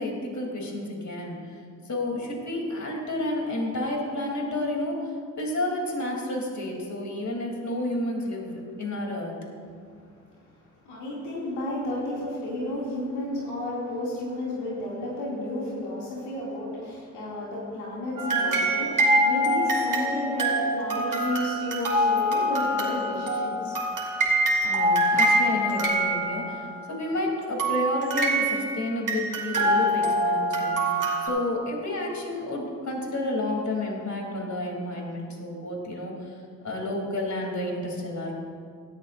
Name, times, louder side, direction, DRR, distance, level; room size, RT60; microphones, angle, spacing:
voice 1, 0.0-1.5 1.9-5.1 5.4-9.3 24.6-36.4 36.6-38.3, left 1 dB, 45° left, -1 dB, 3.4 m, -30 dB
voice 2, 10.8-23.8, left 1 dB, 80° left, -6 dB, 2.8 m, -32 dB
sound 1, 18.2-26.7 27.6-31.3, right 1 dB, 50° right, 2.7 m, -24 dB
17.0 x 12.0 x 2.7 m, 2.1 s
hypercardioid pair, 50°, 39 cm